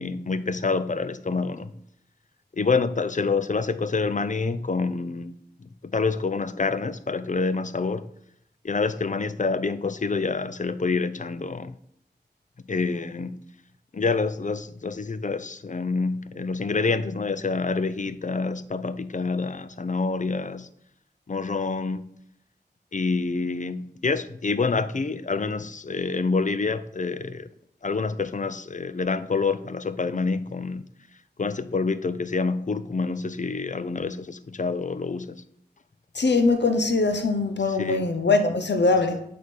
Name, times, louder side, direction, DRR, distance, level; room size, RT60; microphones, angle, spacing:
voice 1, 0.0-1.7 2.5-5.3 5.6-8.1 8.6-11.8 12.7-13.4 13.9-20.7 21.3-22.1 22.9-27.5 27.8-30.8 31.4-35.4 37.8-38.1, left 4 dB, 45° left, 0.4 m, -27 dB
voice 2, 36.1-39.2, left 3 dB, 90° left, 0.8 m, -22 dB
8.7 x 3.4 x 5.3 m
wide cardioid pair, 60°, 18 cm